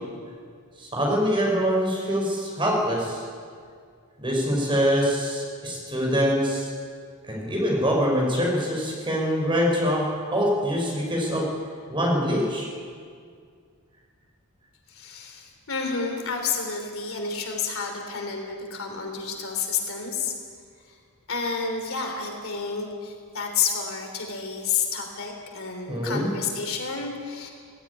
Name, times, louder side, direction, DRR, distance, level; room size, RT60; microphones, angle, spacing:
voice 1, 0.8-3.2 4.2-6.7 7.3-11.4 11.9-12.7 25.9-26.3, equal, 20° right, -2 dB, 5.6 m, -24 dB
voice 2, 14.9-20.3 21.3-27.5, left 5 dB, 65° left, 3 dB, 3.5 m, -30 dB
17.5 x 17.0 x 9.9 m, 2.1 s
head